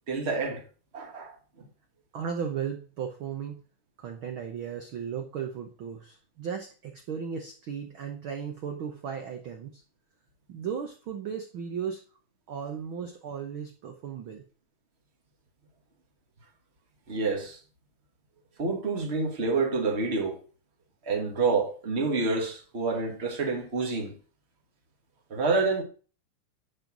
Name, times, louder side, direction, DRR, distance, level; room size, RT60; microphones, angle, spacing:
voice 1, 0.1-0.7 0.9-1.4 17.1-17.6 18.6-20.4 21.0-24.1 25.3-25.8, right 3 dB, 40° right, 0.9 m, -28 dB
voice 2, 2.1-3.6 4.0-9.8 10.5-12.0 12.5-14.4, right 7 dB, 75° right, 1.1 m, -36 dB
10.5 x 4.5 x 5.9 m
omnidirectional pair, 3.7 m